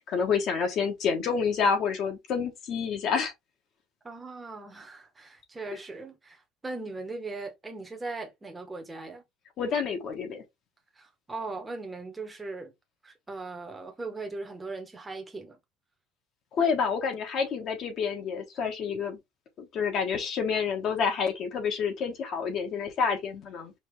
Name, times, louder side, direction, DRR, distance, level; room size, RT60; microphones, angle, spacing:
voice 1, 0.0-3.3 9.6-10.4 16.5-19.2 19.6-23.7, left 6 dB, 40° left, 1.2 m, -28 dB
voice 2, 4.0-9.2 11.0-12.7 13.0-15.6, right 3 dB, 10° right, 1.0 m, -39 dB
5.1 x 2.8 x 3.3 m
cardioid pair, 170°, 0 cm